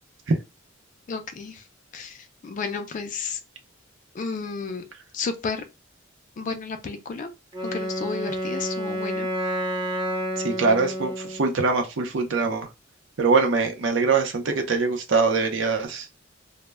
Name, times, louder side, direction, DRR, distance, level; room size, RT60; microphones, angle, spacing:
voice 1, 1.1-1.5 1.9-2.2 2.4-3.4 4.2-4.8 5.1-5.6 6.4-7.3 7.6-9.3, left 5 dB, 40° left, 0.3 m, -32 dB
Wind instrument woodwind instrument, 7.5-11.5, equal, 20° right, 0.6 m, -29 dB
voice 2, 10.4-12.7 13.2-16.0, right 4 dB, 70° right, 0.6 m, -23 dB
2.1 x 2.1 x 3.3 m
head